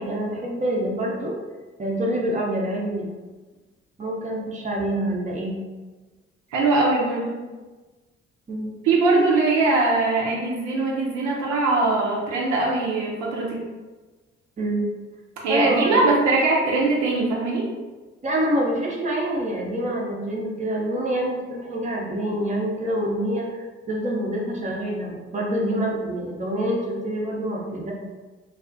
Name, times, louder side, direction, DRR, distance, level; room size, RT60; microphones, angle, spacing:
voice 1, 0.0-1.3 1.8-3.1 4.0-5.5 8.5-8.8 14.6-14.9 15.5-16.1 18.2-27.9, right 1 dB, 25° right, -2 dB, 0.6 m, -26 dB
voice 2, 6.5-7.4 8.8-13.6 15.4-17.6, right 3 dB, 60° right, -3 dB, 0.5 m, -21 dB
2.3 x 2.1 x 2.5 m, 1.3 s
hypercardioid pair, 45°, 32 cm